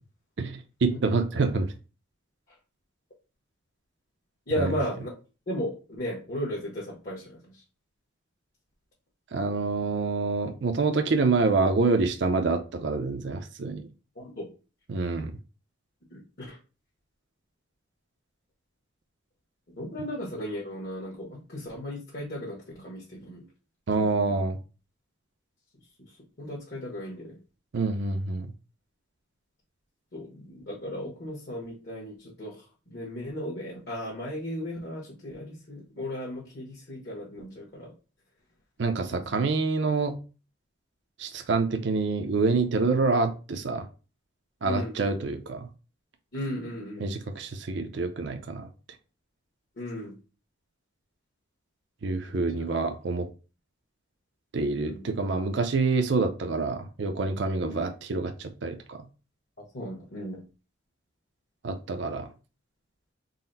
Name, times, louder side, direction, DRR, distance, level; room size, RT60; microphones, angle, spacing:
voice 1, 0.4-1.7 4.6-4.8 9.3-13.9 14.9-15.4 23.9-24.6 27.7-28.5 38.8-40.2 41.2-43.9 44.6-45.7 47.0-48.7 52.0-53.3 54.5-59.1 61.6-62.3, right 3 dB, 60° right, 7 dB, 0.5 m, -27 dB
voice 2, 4.5-5.1 5.5-7.4 14.2-14.5 16.1-16.6 19.8-23.4 24.0-24.1 26.4-27.4 30.1-32.5 32.9-37.9 39.1-39.2 44.6-44.9 46.3-47.0 49.8-50.1 52.3-52.4 54.8-55.1 57.7-57.8 59.7-60.4, equal, 50° left, -5 dB, 1.2 m, -35 dB
4.0 x 2.0 x 4.0 m, 0.33 s
head